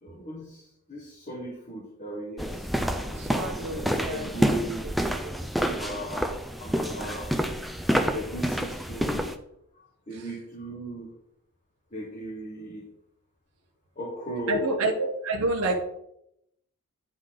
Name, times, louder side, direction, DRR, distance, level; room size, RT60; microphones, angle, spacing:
voice 1, 0.0-2.6 2.9-4.8 5.6-6.3 6.6-7.3 8.0-9.2 10.1-11.1 11.9-12.9 14.0-14.8, equal, 35° left, -2 dB, 1.4 m, -37 dB
sound 1, 2.4-9.3, equal, ahead, 0.4 m, -28 dB
voice 2, 3.2-4.3 4.8-5.3 10.1-10.2 14.5-15.8, right 2 dB, 85° right, 0 dB, 0.9 m, -29 dB
9.3 x 5.0 x 3.8 m, 0.79 s
head